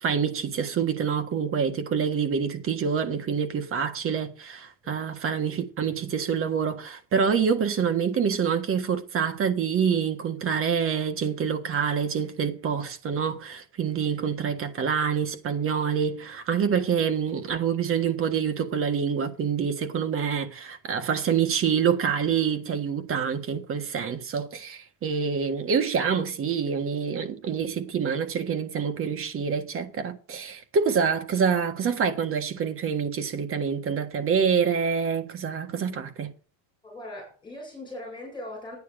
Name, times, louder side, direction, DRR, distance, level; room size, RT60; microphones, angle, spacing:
voice 1, 0.0-36.3, right 7 dB, 30° right, 1.5 m, -26 dB
voice 2, 36.8-38.8, left 1 dB, 10° left, 7.2 m, -39 dB
11.0 x 9.6 x 5.1 m
cardioid pair, 150°, 41 cm